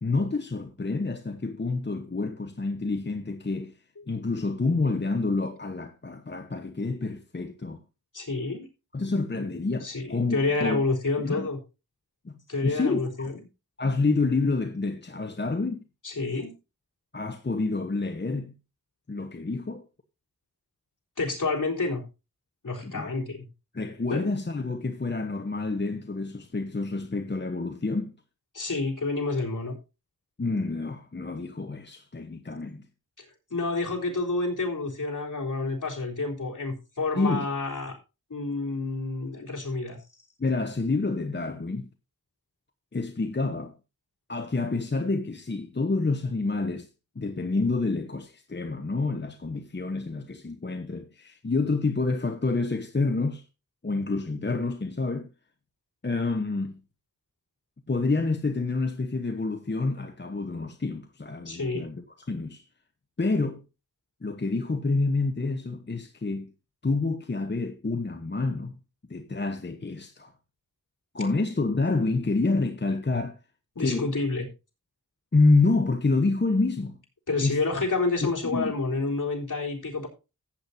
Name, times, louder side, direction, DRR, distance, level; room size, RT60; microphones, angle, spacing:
voice 1, 0.0-3.7 4.1-7.8 8.9-10.8 11.2-11.5 12.2-12.3 12.6-13.0 13.8-15.8 17.1-18.5 19.1-19.9 22.8-23.1 23.7-28.1 30.4-32.8 37.2-37.5 40.4-41.9 42.9-43.7 44.3-46.9 47.2-53.4 53.8-55.3 56.0-56.8 57.9-62.6 63.2-63.6 64.2-66.5 66.8-68.7 69.1-70.3 71.1-73.4 73.8-74.1 75.3-77.0 77.4-77.6 78.2-78.7, left 3 dB, 30° left, 0.9 m, -28 dB
voice 2, 8.1-8.7 9.4-9.5 9.8-11.6 12.5-13.4 16.0-16.5 21.2-22.0 22.6-23.5 24.1-24.3 28.5-29.8 33.5-38.0 38.3-40.0 61.5-61.9 73.8-74.4 77.3-80.1, left 3 dB, 60° left, 3.8 m, -29 dB
14.5 x 8.5 x 2.7 m
wide cardioid pair, 60°, 35 cm